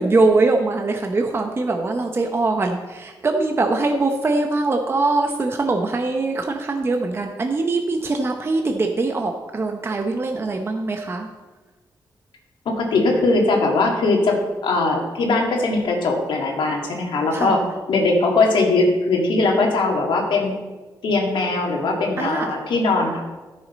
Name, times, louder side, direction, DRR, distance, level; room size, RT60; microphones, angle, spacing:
voice 1, 0.0-11.3 17.3-17.6 22.2-22.5, right 3 dB, 30° right, 4 dB, 0.7 m, -22 dB
voice 2, 12.7-17.6 17.9-20.5 21.0-23.2, left 3 dB, 90° left, 0 dB, 1.9 m, -20 dB
13.5 x 6.5 x 4.2 m, 1.3 s
wide cardioid pair, 130°, 8 cm